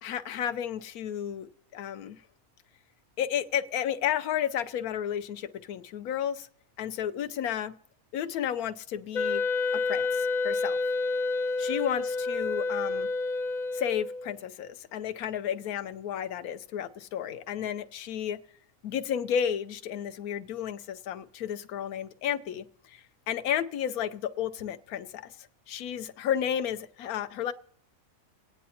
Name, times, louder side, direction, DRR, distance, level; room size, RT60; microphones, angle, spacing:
voice 1, 0.0-2.2 3.2-6.5 6.8-7.7 8.1-9.4 9.7-10.8 11.6-13.1 13.7-18.4 18.8-27.5, left 9 dB, 85° left, 12 dB, 1.1 m, -32 dB
Wind instrument woodwind instrument, 9.1-14.3, left 3 dB, 50° left, 0.5 m, -29 dB
27.5 x 9.4 x 2.8 m, 0.65 s
omnidirectional pair, 1.5 m